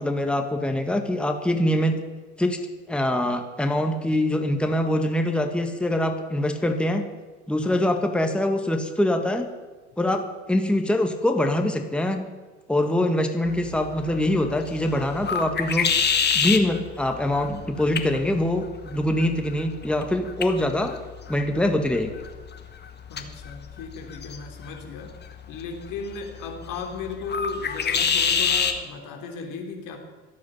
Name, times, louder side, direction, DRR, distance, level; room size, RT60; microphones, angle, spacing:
voice 1, 0.0-2.0 2.4-2.6 2.9-7.1 7.5-9.5 10.0-12.3 12.7-15.9 16.3-20.9 21.3-22.1, left 1 dB, 5° left, 5 dB, 1.7 m, -24 dB
sound 1, 13.5-28.8, left 6 dB, 30° left, 1.7 m, -29 dB
voice 2, 23.1-25.2 25.5-30.0, left 4 dB, 55° left, 3 dB, 3.1 m, -36 dB
24.5 x 8.6 x 5.6 m, 1.4 s
hypercardioid pair, 70°, 36 cm